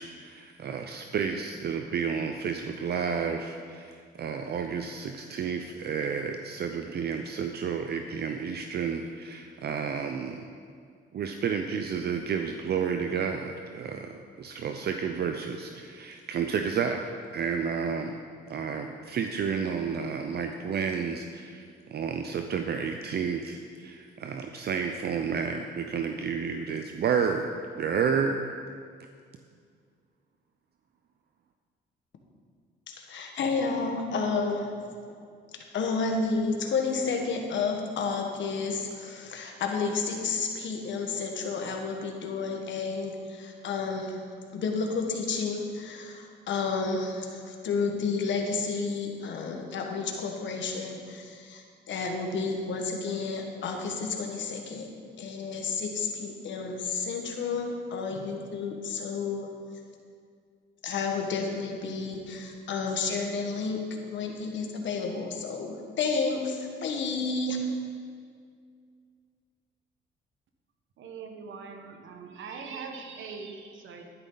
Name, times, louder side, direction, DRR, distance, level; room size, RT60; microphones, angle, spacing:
voice 1, 0.0-10.4 11.1-17.1 17.3-18.2 18.5-27.5 27.8-28.4, right 6 dB, 55° right, 5 dB, 0.6 m, -31 dB
voice 2, 33.0-34.7 35.7-44.2 44.5-54.9 55.2-59.5 60.8-63.8 64.1-67.7, left 4 dB, 70° left, 2 dB, 1.6 m, -31 dB
voice 3, 71.0-74.0, right 5 dB, 75° right, 4 dB, 1.3 m, -41 dB
12.0 x 10.0 x 4.0 m, 2.1 s
cardioid pair, 90°, 20 cm